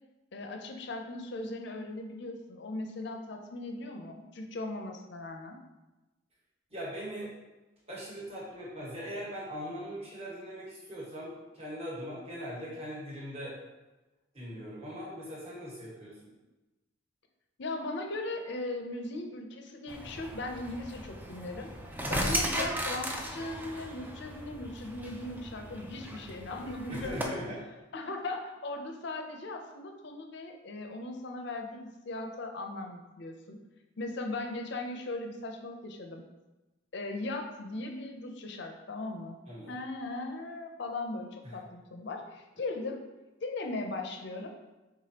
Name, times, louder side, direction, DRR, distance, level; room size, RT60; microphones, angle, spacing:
voice 1, 0.3-5.6 17.6-21.7 22.1-27.4 27.9-33.6 34.0-36.2 36.9-39.4 39.7-43.0 43.4-44.5, left 2 dB, 60° left, 4 dB, 0.5 m, -38 dB
voice 2, 6.7-7.3 7.9-13.6 14.3-16.3 22.0-22.3 26.9-27.6 39.5-39.7 41.4-41.6, equal, 30° right, -6 dB, 1.4 m, -40 dB
sound 1, 19.9-27.3, right 1 dB, 10° right, 0.4 m, -36 dB
4.9 x 3.6 x 2.8 m, 1.1 s
head